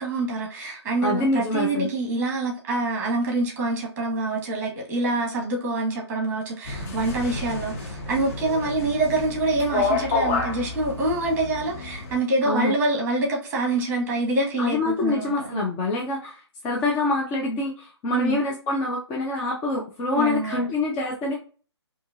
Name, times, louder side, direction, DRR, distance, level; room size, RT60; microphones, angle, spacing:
voice 1, 0.0-15.6 18.1-18.4 20.1-20.7, right 2 dB, 10° right, 1 dB, 1.1 m, -26 dB
voice 2, 1.0-1.9 12.4-12.7 14.6-16.4 16.6-21.3, left 2 dB, 10° left, -1 dB, 0.4 m, -25 dB
sound 1, 6.6-12.2, left 3 dB, 35° left, 1.0 m, -29 dB
4.4 x 2.7 x 2.4 m, 0.39 s
figure-of-eight pair, 140°, 15 cm